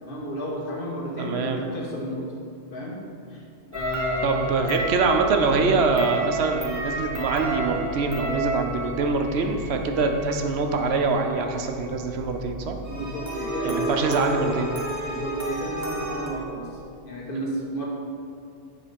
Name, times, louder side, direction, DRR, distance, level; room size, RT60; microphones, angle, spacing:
voice 1, 0.0-2.3 2.7-3.0 3.3-3.4 3.7-4.5 12.9-14.0 15.1-16.7 17.0-17.8, equal, 45° left, -2 dB, 1.3 m, -32 dB
voice 2, 1.2-1.6 4.2-12.8 13.6-14.7, right 3 dB, 65° right, 4 dB, 0.8 m, -24 dB
sound 1, 3.7-16.3, right 2 dB, 15° right, 0.9 m, -32 dB
7.4 x 3.8 x 5.1 m, 2.3 s
omnidirectional pair, 1.3 m